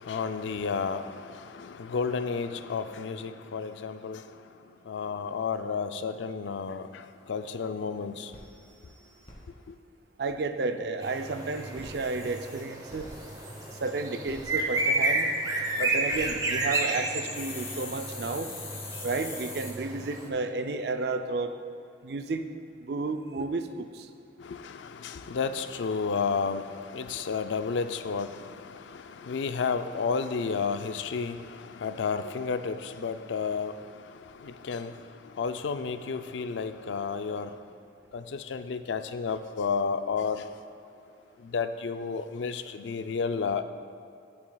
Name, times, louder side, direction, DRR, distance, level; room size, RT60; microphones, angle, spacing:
voice 1, 0.0-4.2 4.9-8.3 9.7-9.8 24.4-33.9 34.3-35.0 35.3-37.6 38.1-40.5 41.4-43.6, left 5 dB, 80° left, 0.4 m, -32 dB
sound 1, 7.2-7.3 7.6-7.7 8.0-8.1 8.3-9.3 11.6-13.8 14.3-14.4 15.9-16.3 17.3-19.7, left 4 dB, 35° left, 1.9 m, -43 dB
voice 2, 10.2-13.1 13.8-15.3 15.8-18.5 19.0-21.5 22.0-22.4 22.8-24.1, right 3 dB, 60° right, 0.5 m, -32 dB
sound 2, 11.0-20.3, right 2 dB, 20° right, 0.8 m, -31 dB
14.0 x 7.1 x 2.3 m
head